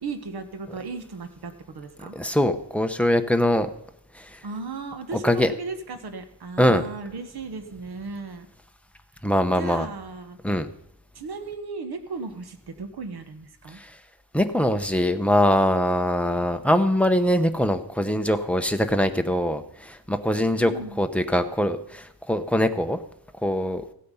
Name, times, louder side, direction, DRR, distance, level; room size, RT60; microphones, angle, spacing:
voice 1, 0.0-2.2 4.4-8.5 9.6-10.4 11.1-13.8 20.6-21.1, right 4 dB, 70° right, 8 dB, 1.5 m, -36 dB
voice 2, 2.1-3.7 4.2-4.3 5.1-5.5 6.6-6.8 9.2-9.9 10.4-10.7 13.8-13.9 14.3-20.7 21.0-23.0 23.4-23.8, left 1 dB, 5° left, 7 dB, 0.7 m, -22 dB
16.0 x 8.4 x 5.5 m, 0.74 s
wide cardioid pair, 155°, 40 cm